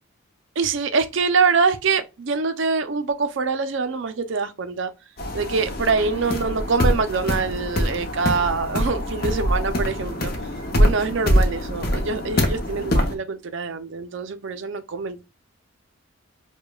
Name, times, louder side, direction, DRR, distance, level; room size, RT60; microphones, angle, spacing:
voice 1, 0.6-4.9 5.3-10.3 10.7-15.2, right 4 dB, 55° right, 0.5 m, -24 dB
sound 1, 5.2-13.1, equal, 45° left, 0.7 m, -23 dB
4.9 x 2.2 x 2.2 m
head